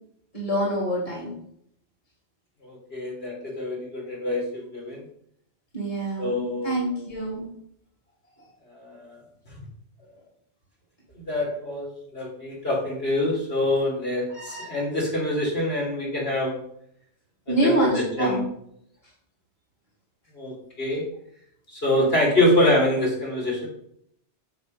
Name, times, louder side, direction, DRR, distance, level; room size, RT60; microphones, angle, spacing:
voice 1, 0.3-1.3 5.7-7.4 17.5-18.4 21.9-22.1, right 1 dB, 30° left, -4 dB, 3.2 m, -26 dB
voice 2, 2.6-5.0 6.2-6.9 8.8-9.2 11.3-16.6 17.6-18.4 20.3-21.0 21.7-23.7, left 1 dB, 60° left, -4 dB, 3.9 m, -25 dB
8.0 x 7.2 x 5.5 m, 0.69 s
omnidirectional pair, 1.2 m